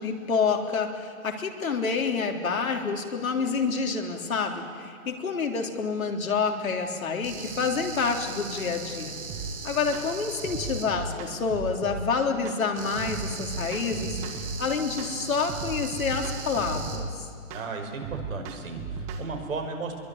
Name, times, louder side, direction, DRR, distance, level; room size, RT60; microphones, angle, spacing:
voice 1, 0.0-9.2 9.6-17.1, left 5 dB, 75° left, 3 dB, 3.5 m, -28 dB
sound 1, 7.2-10.9 12.7-17.0, right 4 dB, 50° right, 4.6 m, -38 dB
sound 2, 9.3-9.5 9.9-10.1 10.4-12.0 12.4-12.6 13.0-14.6 15.0-15.2 15.5-17.1 17.5-17.7 18.0-19.3, right 4 dB, 15° right, 1.3 m, -36 dB
voice 2, 17.5-20.0, right 4 dB, 70° right, 4 dB, 5.6 m, -35 dB
24.5 x 22.5 x 9.5 m, 2.3 s
hypercardioid pair, 155°, 42 cm